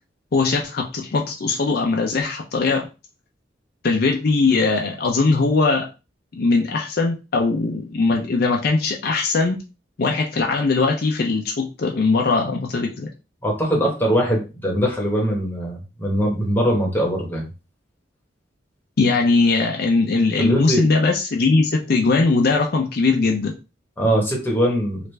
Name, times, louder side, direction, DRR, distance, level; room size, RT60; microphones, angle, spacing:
voice 1, 0.3-2.9 3.8-5.9 6.3-9.6 10.0-13.1 19.0-23.5, left 3 dB, 55° left, 1 dB, 0.5 m, -20 dB
voice 2, 13.4-17.5 20.4-20.8 24.0-25.0, equal, 10° left, -1 dB, 1.0 m, -21 dB
3.3 x 2.5 x 3.2 m, 0.30 s
head